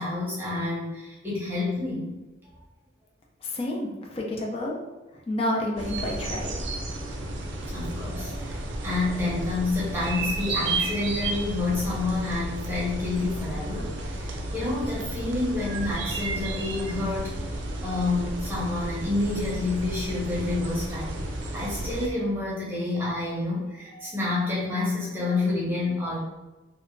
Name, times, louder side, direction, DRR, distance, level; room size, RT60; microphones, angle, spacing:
voice 1, 0.0-2.1 7.7-21.2 21.5-26.2, left 2 dB, 10° right, -7 dB, 0.7 m, -29 dB
voice 2, 3.4-4.8 5.3-6.6, left 1 dB, 30° left, -1 dB, 0.4 m, -29 dB
sound 1, 5.8-22.1, right 2 dB, 80° right, 0.4 m, -32 dB
2.9 x 2.1 x 2.5 m, 1.1 s
head